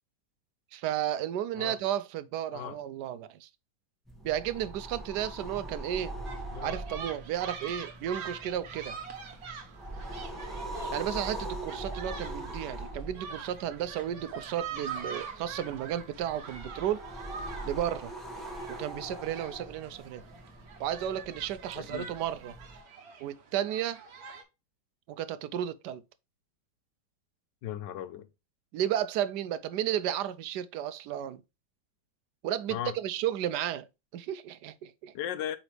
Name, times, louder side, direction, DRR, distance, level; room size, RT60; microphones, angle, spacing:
voice 1, 0.7-3.5 4.2-6.1 6.6-9.0 10.9-17.0 17.6-18.1 18.7-20.2 20.8-22.6 23.2-24.0 25.1-26.0 28.7-31.4 32.4-35.1, right 11 dB, 70° right, 1.1 m, -33 dB
sound 1, 4.1-22.8, right 1 dB, ahead, 1.4 m, -42 dB
sound 2, 6.3-24.4, right 6 dB, 55° right, 1.4 m, -44 dB
voice 2, 21.7-22.1 27.6-28.2 32.7-32.9 35.1-35.6, left 10 dB, 75° left, 1.3 m, -36 dB
8.1 x 4.0 x 3.3 m
omnidirectional pair, 2.0 m